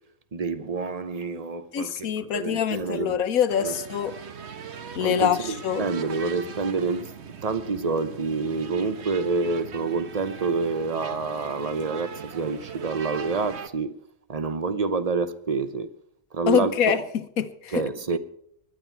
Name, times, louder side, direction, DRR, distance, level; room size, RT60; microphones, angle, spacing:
voice 1, 0.3-3.2 3.6-3.8 5.0-7.1 7.4-13.9 14.3-15.9 16.3-17.0 17.7-18.2, right 4 dB, 35° right, 0.8 m, -28 dB
voice 2, 1.7-4.2 5.0-5.9 16.5-17.8, left 8 dB, 85° left, 1.4 m, -25 dB
sound 1, 3.5-13.7, right 7 dB, 55° right, 1.3 m, -39 dB
20.5 x 11.5 x 4.6 m
omnidirectional pair, 1.4 m